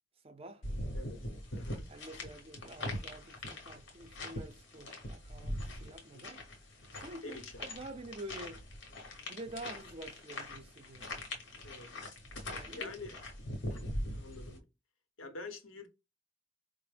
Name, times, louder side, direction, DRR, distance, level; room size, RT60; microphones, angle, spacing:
voice 1, 0.2-0.7 1.9-6.4 6.9-8.6 9.2-11.1 12.4-12.9, right 1 dB, 30° right, 0.5 m, -48 dB
sound 1, 0.6-14.6, left 1 dB, 60° left, 0.9 m, -42 dB
voice 2, 0.9-1.9 6.1-6.3 7.2-7.7 11.6-12.0 12.7-13.1 13.7-14.6 15.2-15.9, left 3 dB, 90° left, 0.8 m, -47 dB
4.4 x 2.0 x 3.3 m
head